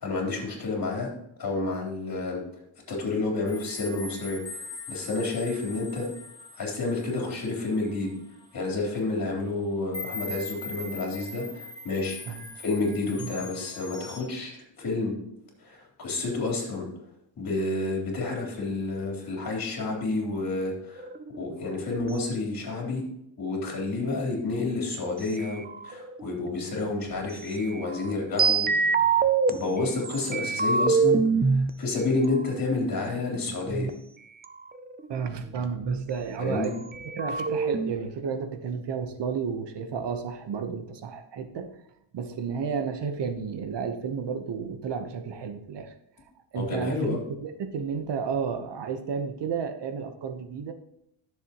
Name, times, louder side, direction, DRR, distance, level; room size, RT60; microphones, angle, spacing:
voice 1, 0.0-1.1 1.4-2.4 2.9-6.1 6.6-8.1 8.5-12.2 12.5-15.1 15.6-16.9 17.4-21.1 21.3-23.0 23.4-28.7 29.0-33.9 36.4-36.7 46.5-47.2, left 3 dB, 45° left, -1 dB, 3.9 m, -30 dB
sound 1, 3.5-8.5 9.1-9.2 9.9-14.2, left 2 dB, 10° left, 2.5 m, -41 dB
sound 2, 21.0-21.7 25.4-26.7 27.6-29.5 30.0-31.7 32.5-33.9 34.4-34.5 34.7-36.1 36.6-36.7 36.9-37.9, right 5 dB, 20° right, 0.5 m, -25 dB
voice 2, 35.1-41.8 42.1-45.9 46.5-50.7, right 6 dB, 60° right, 7 dB, 1.2 m, -32 dB
12.5 x 7.2 x 3.1 m, 0.76 s
cardioid pair, 105°, 48 cm